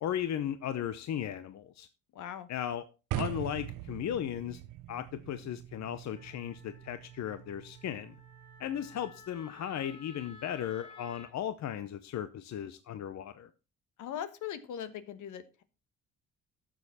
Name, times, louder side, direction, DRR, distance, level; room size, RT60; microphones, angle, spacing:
voice 1, 0.0-1.9 2.5-2.9 3.2-4.6 4.9-8.1 8.6-13.5, left 10 dB, 65° left, 0.8 m, -36 dB
voice 2, 2.1-2.5 14.0-15.6, left 9 dB, 80° left, 1.2 m, -40 dB
sound 1, 3.1-9.2, right 13 dB, 85° right, 0.7 m, -42 dB
Wind instrument woodwind instrument, 6.1-11.3, left 3 dB, 15° left, 3.3 m, -55 dB
11.5 x 7.0 x 4.2 m
cardioid pair, 90°, 30 cm